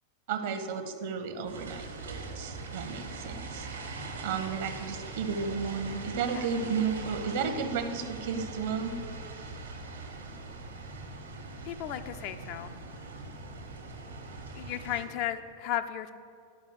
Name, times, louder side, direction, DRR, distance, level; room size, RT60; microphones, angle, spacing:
voice 1, 0.3-3.7 4.2-8.9, right 6 dB, 55° right, 8 dB, 0.9 m, -33 dB
sound 1, 1.5-15.1, right 3 dB, 75° right, 1.4 m, -41 dB
voice 2, 11.7-12.7 14.6-16.1, left 11 dB, 45° left, 9 dB, 0.5 m, -34 dB
11.5 x 5.5 x 6.7 m, 2.4 s
figure-of-eight pair, 90°, 0 cm